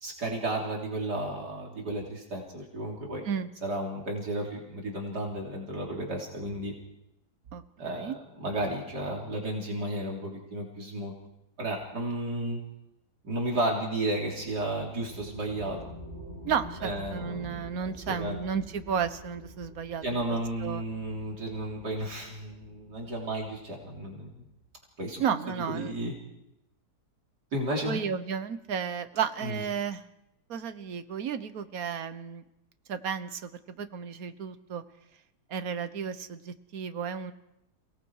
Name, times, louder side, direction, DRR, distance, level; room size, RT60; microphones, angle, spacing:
voice 1, 0.0-3.2 3.6-6.7 7.8-11.1 11.6-12.6 13.2-15.8 16.8-18.4 20.0-24.3 25.0-25.2 25.7-26.1 27.5-28.0 29.4-29.6, right 1 dB, 80° right, -1 dB, 4.0 m, -33 dB
voice 2, 7.5-8.2 16.4-20.2 20.6-20.8 25.2-25.9 27.9-30.0 30.5-32.4 32.9-34.8 35.5-37.3, right 7 dB, 60° right, 10 dB, 1.6 m, -33 dB
sound 1, 14.1-24.1, equal, 25° right, 8.3 m, -47 dB
29.5 x 18.5 x 4.9 m, 0.83 s
omnidirectional pair, 1.7 m